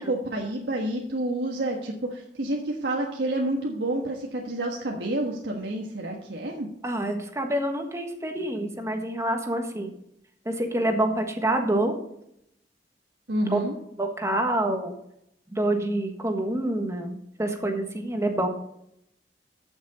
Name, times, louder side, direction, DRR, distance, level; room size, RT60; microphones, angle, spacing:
voice 1, 0.0-6.7 13.3-13.8, right 1 dB, 80° right, -1 dB, 1.5 m, -29 dB
voice 2, 6.8-9.9 10.4-11.9 13.5-13.6 14.0-14.9 15.5-18.5, right 1 dB, 15° right, 4 dB, 1.4 m, -27 dB
14.5 x 6.2 x 4.1 m, 0.76 s
head